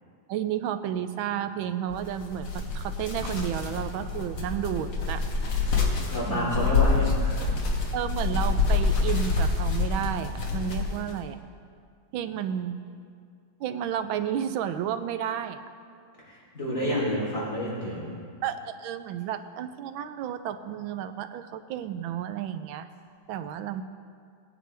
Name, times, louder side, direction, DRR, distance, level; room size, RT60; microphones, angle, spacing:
voice 1, 0.3-5.2 6.2-6.7 7.9-11.4 12.1-12.8 13.6-15.6 18.4-22.9 23.3-23.8, right 9 dB, 85° right, 10 dB, 1.4 m, -32 dB
sound 1, 1.9-11.2, left 4 dB, 70° left, 2.1 m, -27 dB
voice 2, 6.1-7.5 16.2-18.2, equal, 40° left, -7 dB, 3.7 m, -29 dB
17.5 x 9.8 x 3.4 m, 2.2 s
omnidirectional pair, 2.1 m